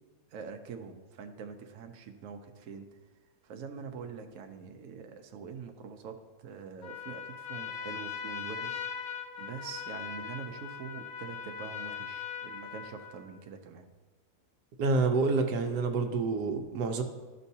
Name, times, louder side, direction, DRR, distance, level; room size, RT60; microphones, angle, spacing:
voice 1, 0.3-2.9 3.4-13.9, right 6 dB, 65° right, 5 dB, 1.0 m, -44 dB
Trumpet, 6.8-13.3, left 8 dB, 80° left, 0.4 m, -40 dB
voice 2, 14.8-17.0, right 4 dB, 90° right, 5 dB, 1.3 m, -28 dB
12.5 x 5.3 x 2.8 m, 1.3 s
omnidirectional pair, 1.7 m